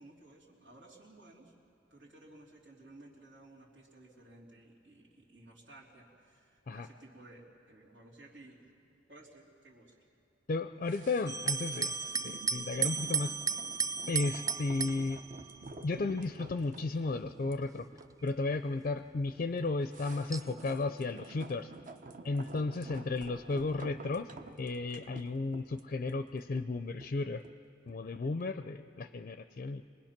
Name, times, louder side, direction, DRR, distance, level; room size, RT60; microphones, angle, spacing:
voice 1, 0.0-1.5 1.9-8.7 9.1-10.1 22.6-22.9 23.5-23.6, right 2 dB, 90° right, -5 dB, 3.3 m, -56 dB
voice 2, 10.5-11.9 12.2-13.3 14.1-15.2 15.8-17.9 18.2-21.7 22.2-24.3 24.6-27.4 27.9-29.8, left 3 dB, 45° left, 10 dB, 0.4 m, -34 dB
sound 1, 10.8-28.1 28.4-28.5, right 3 dB, 45° right, 0.8 m, -51 dB
sound 2, 11.3-16.0 16.8-17.3 18.0-18.1 20.3-20.8, right 6 dB, 20° right, 0.4 m, -35 dB
25.5 x 20.0 x 5.9 m, 2.5 s
head